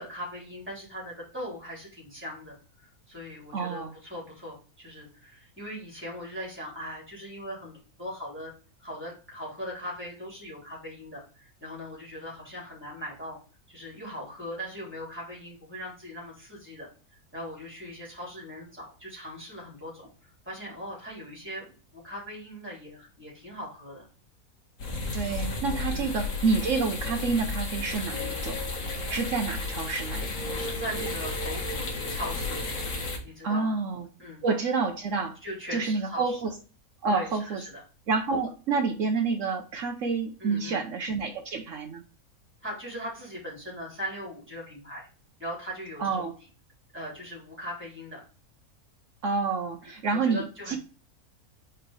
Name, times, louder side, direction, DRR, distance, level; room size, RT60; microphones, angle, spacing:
voice 1, 0.0-2.6 3.1-8.5 8.8-13.4 13.7-24.1 25.9-26.1 30.5-32.6 33.2-33.8 34.2-34.4 35.4-36.4 37.1-37.8 38.3-38.4 40.4-40.8 42.6-45.1 45.4-46.3 46.9-48.2 49.8-50.8, equal, 10° right, -5 dB, 3.1 m, -40 dB
voice 2, 3.5-3.9 25.1-28.6 29.1-30.3 33.4-34.1 34.4-35.4 35.7-36.5 37.0-37.6 38.1-42.0 46.0-46.3 49.2-50.8, right 4 dB, 65° right, 5 dB, 1.0 m, -28 dB
sound 1, 24.8-33.2, left 2 dB, 65° left, 1.9 m, -33 dB
4.6 x 4.3 x 4.9 m, 0.36 s
omnidirectional pair, 1.5 m